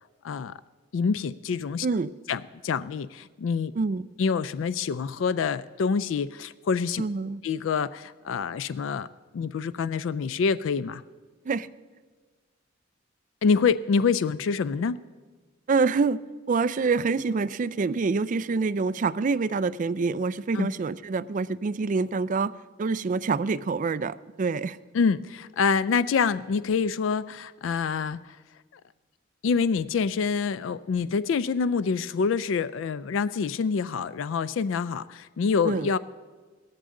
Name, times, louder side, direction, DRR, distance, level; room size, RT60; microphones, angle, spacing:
voice 1, 0.2-0.6 0.9-1.9 2.3-3.7 4.2-7.0 7.4-9.1 9.3-11.0 13.4-15.0 20.5-20.7 24.9-28.4 28.7-28.8 29.4-36.0, left 5 dB, 75° left, 16 dB, 0.3 m, -26 dB
voice 2, 7.0-7.4 11.5-11.7 15.7-16.2 16.5-22.5 22.8-24.8 35.6-35.9, right 4 dB, 40° right, 15 dB, 0.4 m, -26 dB
17.0 x 13.5 x 3.8 m, 1.4 s
head